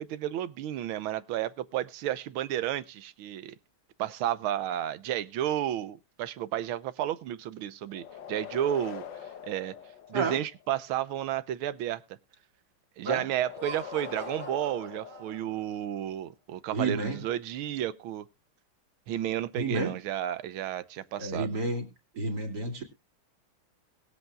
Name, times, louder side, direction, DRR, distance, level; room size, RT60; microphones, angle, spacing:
voice 1, 0.0-3.5 4.0-9.7 10.1-12.0 13.0-18.3 19.1-21.6, right 11 dB, 85° right, 1.6 m, -32 dB
sound 1, 7.9-10.7 13.3-16.0, left 8 dB, 65° left, 1.6 m, -43 dB
Laughter, 13.4-15.8, right 4 dB, 30° right, 1.1 m, -45 dB
voice 2, 16.7-17.2 19.6-19.9 21.2-21.8 22.1-22.8, right 3 dB, 50° right, 3.1 m, -30 dB
21.5 x 8.0 x 2.3 m
omnidirectional pair, 2.3 m